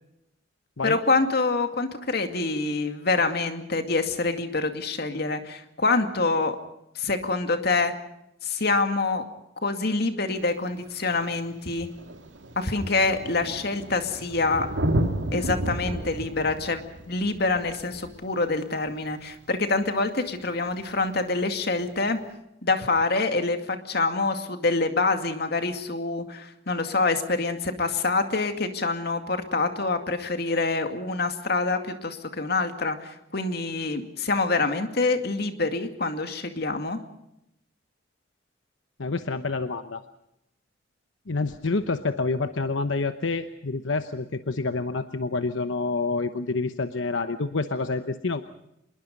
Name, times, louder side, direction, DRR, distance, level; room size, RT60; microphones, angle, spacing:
voice 1, 0.8-6.6 7.0-7.9 8.4-9.2 9.6-11.9 12.6-14.7 15.3-22.2 22.6-37.0, left 3 dB, 55° left, 7 dB, 2.3 m, -26 dB
Thunder, 10.4-10.5 11.5-11.6 11.8-19.1 20.8-20.9, right 1 dB, 80° right, 2.1 m, -32 dB
voice 2, 39.0-40.0 41.3-48.4, left 3 dB, 85° left, 9 dB, 1.0 m, -28 dB
26.0 x 21.5 x 5.4 m, 0.82 s
head